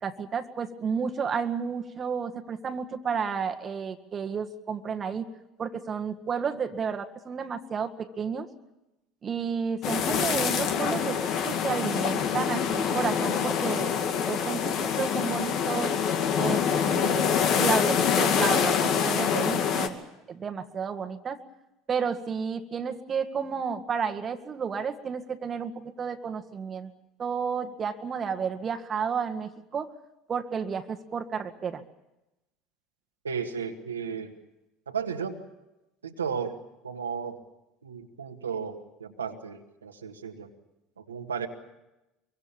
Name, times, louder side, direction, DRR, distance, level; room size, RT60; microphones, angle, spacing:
voice 1, 0.0-5.3 5.6-8.5 9.2-14.0 14.2-16.0 16.4-20.0 20.3-21.4 21.9-25.7 26.0-26.9 27.2-29.9 30.3-31.8, right 6 dB, 35° right, 6 dB, 1.8 m, -31 dB
sound 1, 9.8-19.9, left 7 dB, 55° left, 2.2 m, -25 dB
voice 2, 33.2-34.3 34.9-35.4 36.0-36.6 36.8-37.4 37.8-40.5 41.0-41.5, right 6 dB, 90° right, 3 dB, 1.9 m, -34 dB
24.0 x 24.0 x 7.2 m, 0.95 s
hypercardioid pair, 70°, 0 cm